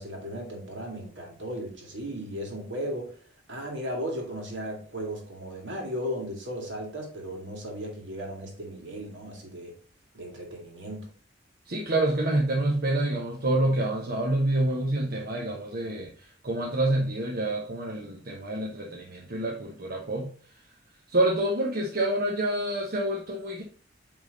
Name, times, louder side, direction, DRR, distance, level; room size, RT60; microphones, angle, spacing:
voice 1, 0.0-3.2 3.5-9.7 10.1-11.1, equal, 70° right, 1 dB, 2.2 m, -36 dB
voice 2, 11.7-20.3 21.1-23.6, right 1 dB, 55° right, -1 dB, 1.0 m, -27 dB
8.4 x 3.6 x 4.0 m, 0.42 s
head